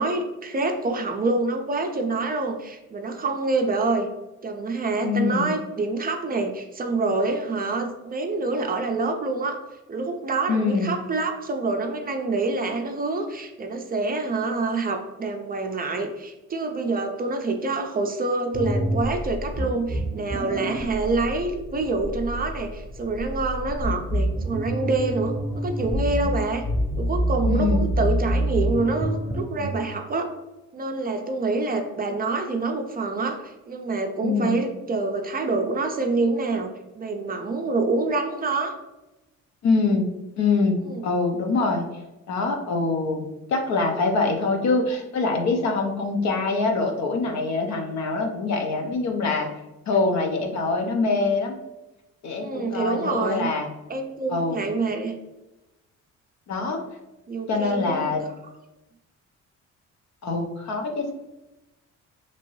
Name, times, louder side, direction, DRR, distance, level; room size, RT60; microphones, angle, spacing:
voice 1, 0.0-4.1 4.4-9.6 9.9-26.6 27.0-30.3 30.7-38.8 40.8-41.0 52.4-53.5 53.9-55.1 57.3-58.1, right 3 dB, 30° right, 4 dB, 0.4 m, -26 dB
voice 2, 5.0-5.5 10.5-11.0 27.5-27.8 34.2-34.6 39.6-40.1 40.4-41.9 42.3-43.2 43.5-49.5 49.9-51.6 52.2-53.7 54.3-54.6 56.5-56.8 57.5-58.2 60.2-61.1, left 3 dB, 65° left, 3 dB, 0.6 m, -24 dB
sound 1, 18.5-29.8, right 1 dB, 10° left, 0.7 m, -27 dB
2.9 x 2.6 x 3.0 m, 0.99 s
cardioid pair, 90°, 30 cm